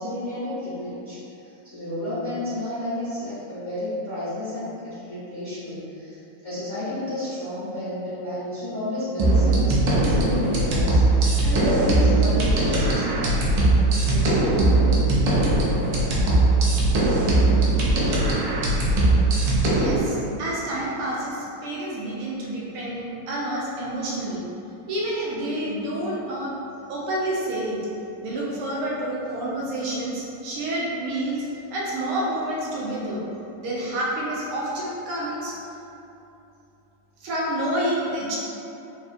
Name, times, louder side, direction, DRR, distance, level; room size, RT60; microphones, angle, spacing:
voice 1, 0.0-13.5 14.0-14.5, left 1 dB, 25° left, -14 dB, 1.2 m, -31 dB
sound 1, 9.2-20.0, right 2 dB, 65° right, 1.3 m, -20 dB
voice 2, 19.7-24.4 24.9-26.5 26.9-27.8 28.2-31.4 31.7-33.2 33.6-35.5 37.2-38.4, right 1 dB, 80° right, -5 dB, 1.7 m, -28 dB
4.2 x 3.5 x 2.5 m, 2.8 s
omnidirectional pair, 2.4 m